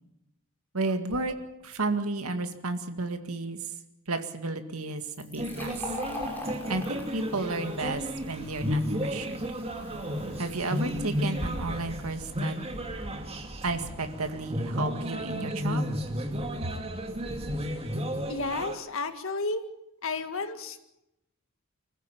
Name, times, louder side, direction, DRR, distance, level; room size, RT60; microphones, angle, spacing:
voice 1, 0.7-1.4 1.6-3.6 4.1-5.8 6.7-9.4 10.4-12.5 13.6-15.8 16.6-16.7, right 3 dB, 85° right, 7 dB, 2.0 m, -32 dB
Fill (with liquid), 5.0-12.4, left 1 dB, 10° left, 5.9 m, -44 dB
sound 1, 5.4-18.8, equal, 30° right, 2.3 m, -33 dB
voice 2, 18.3-19.6 20.0-20.9, left 3 dB, 65° left, 9 dB, 1.9 m, -32 dB
25.0 x 15.0 x 8.6 m, 0.89 s
head